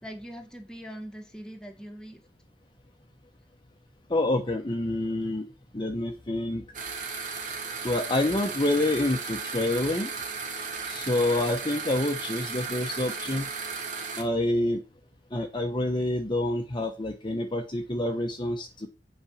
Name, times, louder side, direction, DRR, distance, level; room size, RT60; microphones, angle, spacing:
voice 1, 0.0-2.2, equal, 5° left, 3 dB, 2.0 m, -42 dB
voice 2, 4.1-5.5 5.7-6.6 7.8-10.1 10.8-13.5 14.2-14.8 15.3-18.9, left 1 dB, 25° left, 3 dB, 1.1 m, -27 dB
sound 1, 6.7-14.2, right 5 dB, 50° right, 2.6 m, -35 dB
8.8 x 5.4 x 7.3 m, 0.29 s
head